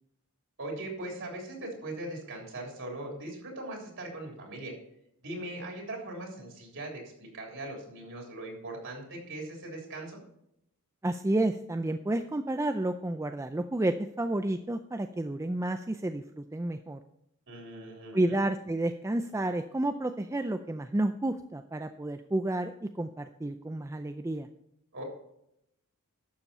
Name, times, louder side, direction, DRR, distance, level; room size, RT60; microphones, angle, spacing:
voice 1, 0.6-4.7 5.2-10.2 17.5-18.4 24.9-25.0, right 1 dB, 60° right, 0 dB, 3.3 m, -40 dB
voice 2, 11.0-17.0 18.1-24.5, right 1 dB, 15° right, 7 dB, 0.4 m, -31 dB
12.0 x 7.2 x 4.3 m, 0.78 s
head